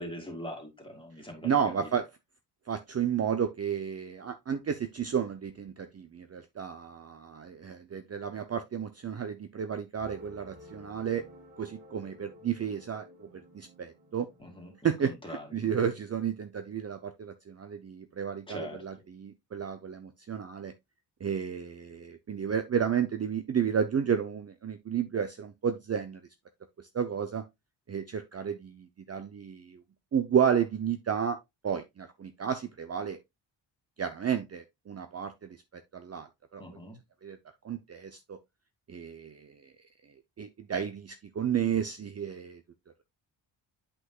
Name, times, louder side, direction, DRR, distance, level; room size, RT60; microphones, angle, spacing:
voice 1, 0.0-1.9 14.4-15.7 18.5-18.8 36.6-37.0, equal, 10° left, 2.6 m, -42 dB
voice 2, 1.4-2.0 2.7-11.2 11.6-13.3 13.5-14.3 14.8-20.7 21.2-26.2 26.9-27.4 27.9-29.8 30.1-31.4 31.6-33.2 34.0-36.6 37.2-37.4 37.6-38.4 38.9-39.7 40.4-42.6, right 8 dB, 35° right, 0.7 m, -32 dB
sound 1, 10.0-15.2, left 1 dB, 70° right, 3.7 m, -53 dB
8.2 x 6.2 x 2.3 m
cardioid pair, 125°, 44 cm